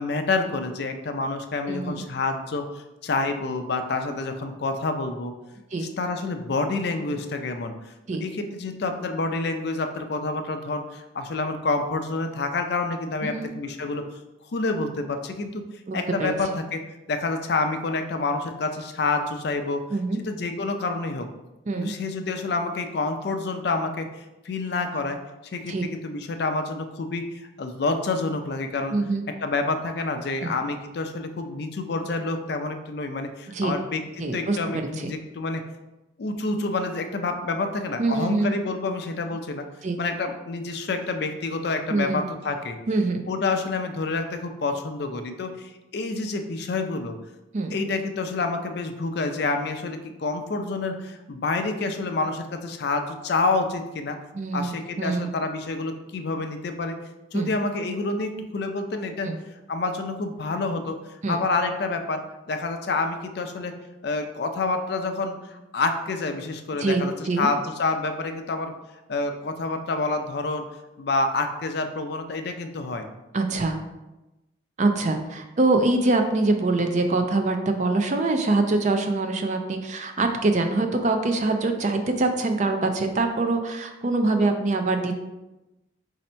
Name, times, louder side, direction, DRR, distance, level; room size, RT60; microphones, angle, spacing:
voice 1, 0.0-5.3 5.8-7.9 8.2-14.0 14.5-15.6 15.9-19.8 20.2-21.3 21.8-29.0 29.4-34.0 34.3-35.6 36.2-39.7 40.0-42.8 43.3-47.2 47.7-54.2 54.5-57.0 57.3-59.3 59.7-61.0 61.3-62.2 62.5-63.7 64.0-67.1 67.4-68.7 69.1-70.7 71.0-73.1, left 3 dB, 55° left, 6 dB, 0.4 m, -28 dB
voice 2, 1.7-2.0 5.7-5.9 8.1-8.3 13.2-13.5 15.9-16.3 19.9-20.2 21.7-21.9 25.6-25.8 28.9-29.2 30.4-30.5 33.5-33.8 34.2-35.1 38.0-38.5 39.8-40.0 41.9-42.2 42.9-43.2 47.5-47.8 54.3-55.3 57.3-57.5 59.2-59.4 61.2-61.4 66.8-67.5 73.3-73.8 74.8-85.1, right 2 dB, 40° right, 5 dB, 0.4 m, -24 dB
4.1 x 2.7 x 4.3 m, 1.0 s
head